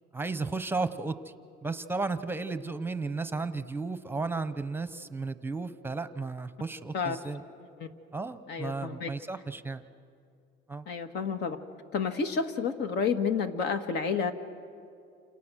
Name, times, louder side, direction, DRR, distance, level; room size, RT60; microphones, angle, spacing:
voice 1, 0.1-1.2 1.6-7.4 8.1-9.8 10.7-10.8, right 3 dB, 10° right, 11 dB, 0.9 m, -34 dB
voice 2, 8.5-9.1 10.8-11.6 11.9-14.3, left 5 dB, 60° left, 7 dB, 1.8 m, -30 dB
29.0 x 27.5 x 6.4 m, 2.5 s
cardioid pair, 125°, 20 cm